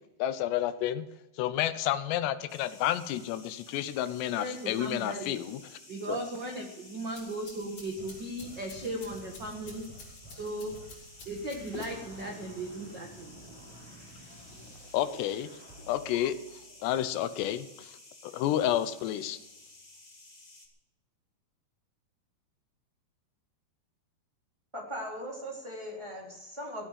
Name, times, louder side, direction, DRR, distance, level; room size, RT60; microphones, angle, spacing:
voice 1, 0.2-1.1 1.4-5.6 6.1-6.2 11.7-11.8 14.9-15.5 15.9-16.4 16.8-18.0 18.2-19.4, left 12 dB, 85° left, 13 dB, 2.9 m, -30 dB
sound 1, 2.5-20.7, left 2 dB, 30° left, 0.8 m, -54 dB
voice 2, 4.4-5.4 5.9-9.8 10.3-10.7 11.2-13.3, right 1 dB, 70° right, 2 dB, 1.0 m, -37 dB
sound 2, 6.9-12.2, left 3 dB, 45° left, 5.3 m, -52 dB
sound 3, 8.0-17.3, right 2 dB, 50° right, 5.2 m, -52 dB
voice 3, 24.7-26.9, equal, 5° right, -3 dB, 3.2 m, -39 dB
16.5 x 8.6 x 7.6 m, 0.97 s
omnidirectional pair, 4.8 m